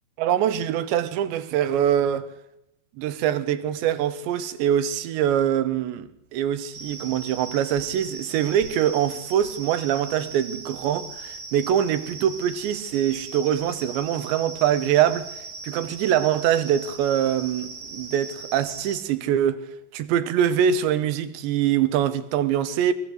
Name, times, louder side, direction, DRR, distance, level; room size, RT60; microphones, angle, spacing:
voice 1, 0.2-2.3 3.0-15.4 15.6-19.6 19.9-22.9, right 10 dB, 85° right, 3.5 m, -23 dB
sound 1, 6.7-19.0, right 3 dB, 40° right, 1.8 m, -39 dB
23.0 x 19.0 x 8.0 m
omnidirectional pair, 5.0 m